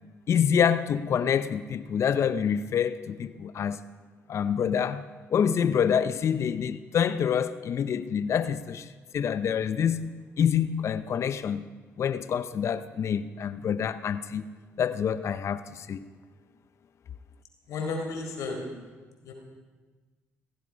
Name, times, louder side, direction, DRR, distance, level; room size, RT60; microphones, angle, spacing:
voice 1, 0.3-3.8 4.3-5.0 5.3-8.9 9.1-11.6 12.0-14.4 14.8-16.0, left 8 dB, 55° left, 0.7 m, -26 dB
voice 2, 17.7-18.6 19.2-19.3, left 3 dB, 75° left, 4.3 m, -32 dB
16.5 x 16.0 x 5.3 m
supercardioid pair, 65°, 6 cm